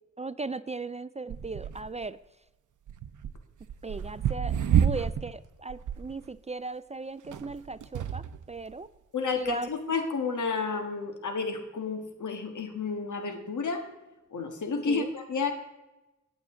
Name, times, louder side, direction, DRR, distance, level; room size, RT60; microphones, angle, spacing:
voice 1, 0.2-2.2 3.8-4.6 4.8-8.9 9.4-9.7 14.8-15.1, right 3 dB, 25° right, 16 dB, 0.3 m, -37 dB
sound 1, 1.3-2.1 2.9-5.3 5.7-6.1 7.2-8.5 9.3-9.4, right 9 dB, 80° right, 0.6 m, -29 dB
voice 2, 9.1-13.8 14.3-15.5, left 4 dB, 75° left, 6 dB, 1.6 m, -31 dB
18.5 x 7.1 x 3.7 m, 1.0 s
cardioid pair, 70°, 30 cm